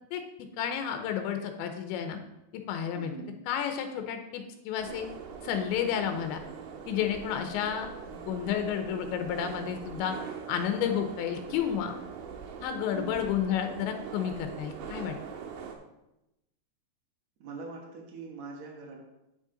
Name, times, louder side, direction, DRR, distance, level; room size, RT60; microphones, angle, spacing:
voice 1, 0.6-2.2 2.5-3.1 3.5-5.1 5.4-6.4 6.9-10.2 10.5-12.0 12.6-15.2, left 9 dB, 90° left, 6 dB, 3.0 m, -31 dB
voice 2, 2.9-3.4 12.9-13.2 17.4-19.0, right 4 dB, 65° right, 0 dB, 1.8 m, -42 dB
sound 1, 4.8-15.8, right 6 dB, 85° right, 3.2 m, -42 dB
9.0 x 6.4 x 3.9 m, 0.91 s
omnidirectional pair, 5.1 m